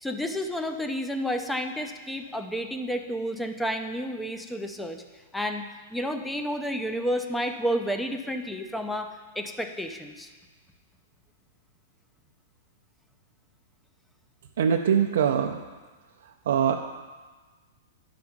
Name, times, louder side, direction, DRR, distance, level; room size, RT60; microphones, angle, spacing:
voice 1, 0.0-5.0 5.3-5.6 5.9-10.3, equal, 5° left, 6 dB, 0.5 m, -31 dB
voice 2, 14.6-15.6 16.5-16.8, right 8 dB, 75° right, 2 dB, 0.5 m, -22 dB
10.5 x 5.0 x 5.9 m, 1.4 s
supercardioid pair, 155°, 0 cm